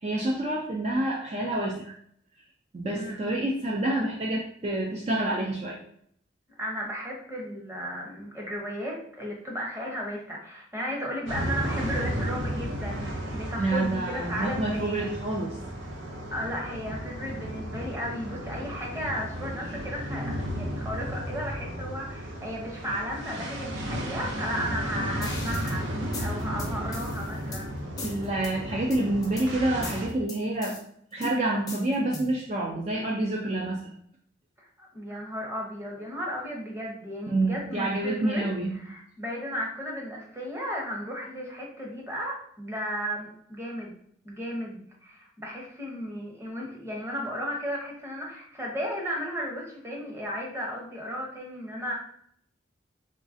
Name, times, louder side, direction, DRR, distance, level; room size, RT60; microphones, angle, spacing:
voice 1, 0.0-1.9 2.7-5.8 13.6-15.6 28.0-30.8 31.1-33.9 37.3-38.8, right 1 dB, 35° right, -2 dB, 0.4 m, -28 dB
voice 2, 2.9-3.3 6.6-15.2 16.3-27.8 34.6-38.5 38.7-43.9 44.2-51.9, equal, 15° right, -2 dB, 0.8 m, -35 dB
sound 1, 11.3-30.1, equal, 80° right, 0.7 m, -34 dB
sound 2, 25.2-25.8 26.1-27.6 28.0-28.5 28.9-29.5 29.8-30.8 31.2-32.4, left 2 dB, 20° left, 0.5 m, -38 dB
3.7 x 3.1 x 2.6 m, 0.65 s
head